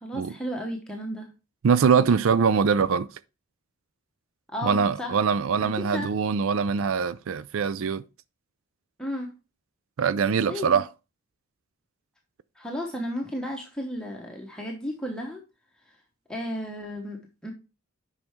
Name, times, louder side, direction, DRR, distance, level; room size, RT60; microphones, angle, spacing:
voice 1, 0.0-1.3 2.0-2.1 4.5-5.2 5.6-6.1 9.0-9.3 10.5-10.8 12.6-15.4 16.3-17.5, equal, 5° left, 1.0 m, -34 dB
voice 2, 1.6-3.1 4.6-8.0 10.0-10.9, right 6 dB, 70° right, 0.4 m, -23 dB
8.9 x 5.5 x 3.5 m
head